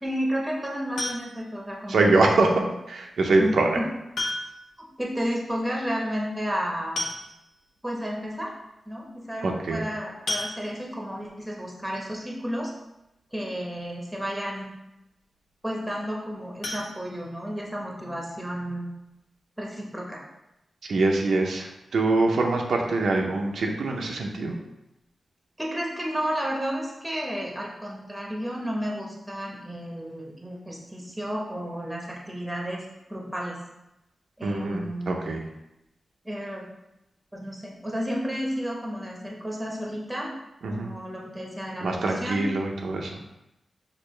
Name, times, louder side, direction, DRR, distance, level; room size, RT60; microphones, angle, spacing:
voice 1, 0.0-2.0 2.3-2.7 3.4-3.9 4.8-7.1 7.8-8.5 8.9-12.7 13.3-14.7 15.6-18.9 19.6-20.2 25.6-32.8 33.1-33.6 34.4-35.1 36.2-36.7 37.3-40.3 40.7-42.5, equal, 5° right, -2 dB, 0.9 m, -32 dB
sound 1, 1.0-1.6 3.1-3.2 4.1-4.8 5.1-5.2 5.5-5.6 6.6-6.7 7.0-7.7 8.2-8.3 8.7-8.8 10.3-11.1 16.6-17.8 18.2-18.3 18.7-18.8 19.2-19.3, left 2 dB, 90° left, 0.8 m, -33 dB
voice 2, 1.9-2.6 2.9-3.7 9.4-9.8 20.9-24.6 34.4-35.4 40.6-40.9 41.8-43.2, right 3 dB, 75° right, 1 dB, 0.6 m, -24 dB
6.4 x 2.5 x 3.2 m, 0.92 s
wide cardioid pair, 135°, 0 cm